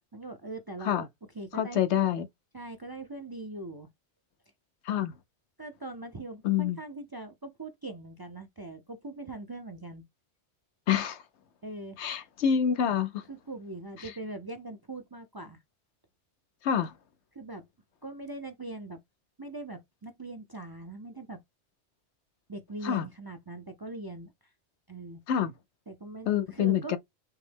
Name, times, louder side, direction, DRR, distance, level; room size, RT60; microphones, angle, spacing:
voice 1, 0.1-1.1 1.3-1.8 2.5-3.9 5.6-10.0 11.6-12.0 13.3-15.6 17.3-17.6 18.0-19.0 19.4-21.4 22.5-24.3 24.9-25.2 25.9-27.0, right 2 dB, 30° right, 0.4 m, -41 dB
voice 2, 1.5-2.3 4.8-5.1 6.4-6.8 10.9-11.2 12.0-13.2 16.6-16.9 22.8-23.0 25.3-25.5 26.3-27.0, left 9 dB, 85° left, 1.0 m, -27 dB
5.6 x 2.1 x 3.3 m
omnidirectional pair, 1.1 m